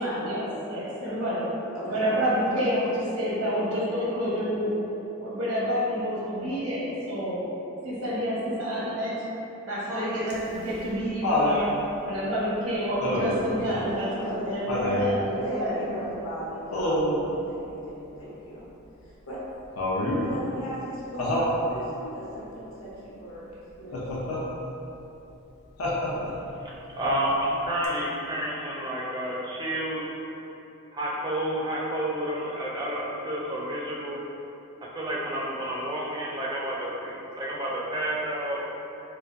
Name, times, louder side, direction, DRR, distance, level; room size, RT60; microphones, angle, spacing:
voice 1, 0.0-1.5 1.8-4.8 5.2-7.4 7.8-9.1 9.7-11.7 12.0-15.8, equal, 85° right, -7 dB, 0.9 m, -28 dB
voice 2, 1.7-2.0 13.6-14.5 15.4-18.7 19.0-19.4 20.2-24.3, right 1 dB, 65° left, -9 dB, 1.0 m, -37 dB
Laughter, 10.3-11.6 13.0-13.5 14.7-15.1 16.7-17.2 19.8-20.3 21.2-21.6 23.9-24.4 25.8-26.4 27.8-27.9, left 1 dB, 85° left, 0.6 m, -26 dB
voice 3, 26.6-30.1 30.9-34.2 34.8-38.6, right 1 dB, 20° right, -5 dB, 0.4 m, -30 dB
4.2 x 2.4 x 2.4 m, 3.0 s
head